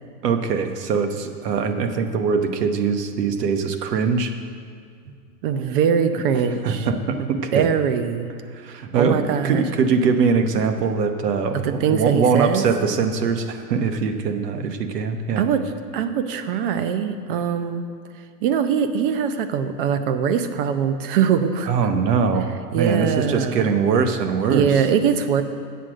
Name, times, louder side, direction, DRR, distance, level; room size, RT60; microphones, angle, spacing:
voice 1, 0.2-4.3 6.6-7.7 8.5-15.5 21.7-24.8, right 5 dB, 70° right, 7 dB, 1.1 m, -22 dB
voice 2, 5.4-6.9 7.2-8.3 8.9-9.6 11.6-12.7 15.4-17.9 18.4-21.7 22.7-23.8 24.5-25.4, right 7 dB, 35° right, 10 dB, 0.5 m, -22 dB
8.3 x 7.4 x 6.3 m, 2.2 s
hypercardioid pair, 135°, 49 cm